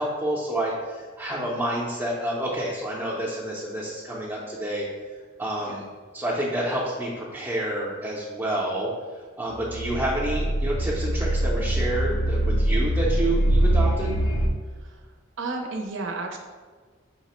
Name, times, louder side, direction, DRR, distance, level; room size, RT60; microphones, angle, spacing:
voice 1, 0.0-4.9 5.4-5.8 6.1-8.9 9.4-14.1, right 1 dB, 15° right, -5 dB, 0.5 m, -29 dB
sound 1, 9.5-14.5, right 1 dB, 90° left, 0.5 m, -23 dB
voice 2, 14.7-16.4, right 3 dB, 70° right, 2 dB, 0.6 m, -34 dB
5.6 x 2.0 x 4.1 m, 1.5 s
head